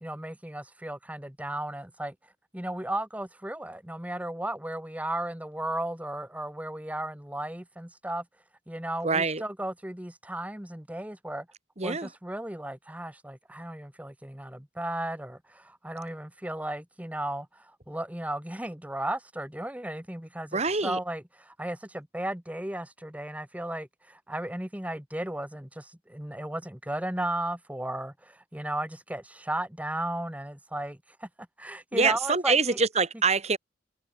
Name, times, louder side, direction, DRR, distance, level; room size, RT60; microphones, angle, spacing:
voice 1, 0.0-2.1 2.5-8.2 8.7-11.5 11.8-31.3 31.6-32.8, right 1 dB, 10° right, 1.3 m, -35 dB
voice 2, 9.0-9.4 11.8-12.1 20.5-21.0 31.9-33.6, right 4 dB, 35° right, 2.1 m, -25 dB
head